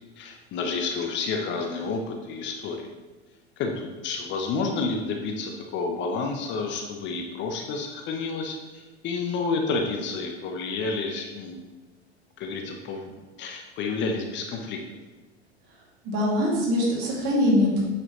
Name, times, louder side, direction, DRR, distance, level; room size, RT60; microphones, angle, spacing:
voice 1, 0.2-2.9 3.6-11.6 12.4-13.1 13.4-14.8, left 4 dB, 35° left, 3 dB, 0.9 m, -30 dB
voice 2, 16.0-17.8, left 1 dB, 45° right, -4 dB, 2.5 m, -22 dB
7.8 x 6.0 x 3.1 m, 1.2 s
figure-of-eight pair, 85°, 33 cm